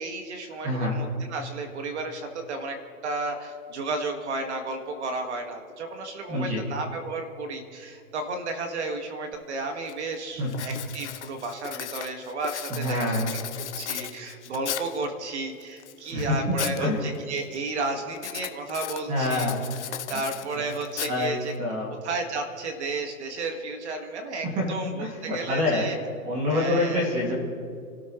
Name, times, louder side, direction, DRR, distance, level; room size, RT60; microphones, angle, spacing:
voice 1, 0.0-2.8 3.0-13.2 13.6-19.5 20.1-21.5 22.0-26.0 26.5-27.1, right 3 dB, 45° right, 4 dB, 2.1 m, -33 dB
voice 2, 6.3-6.6 10.4-10.5 12.7-13.3 16.1-17.0 19.1-19.6 21.1-21.3 21.6-21.9 24.4-25.9 26.2-27.3, left 1 dB, 15° right, -2 dB, 2.5 m, -26 dB
Writing, 9.3-9.4 9.9-10.1 10.5-15.0 15.6-16.8 17.1-17.6 18.1-21.6, left 10 dB, 50° left, 1.0 m, -36 dB
28.5 x 13.0 x 3.3 m, 2.3 s
hypercardioid pair, 165°, 45 cm